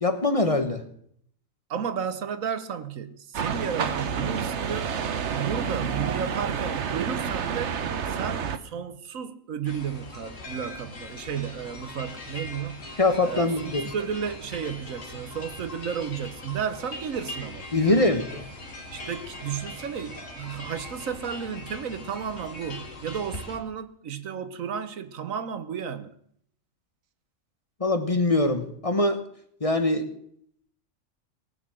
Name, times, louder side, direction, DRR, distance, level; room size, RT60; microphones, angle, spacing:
voice 1, 0.0-0.9 13.0-13.9 17.7-18.5 27.8-29.2 29.6-30.1, left 2 dB, 30° left, 1.1 m, -23 dB
voice 2, 1.7-4.9 5.3-7.8 8.1-12.9 13.2-13.5 13.9-17.7 18.9-26.1, right 7 dB, 75° right, 1.4 m, -33 dB
sound 1, 3.3-8.6, right 7 dB, 60° right, 1.2 m, -29 dB
sound 2, 9.6-23.6, left 2 dB, 65° left, 2.5 m, -41 dB
19.0 x 7.0 x 7.6 m
omnidirectional pair, 1.4 m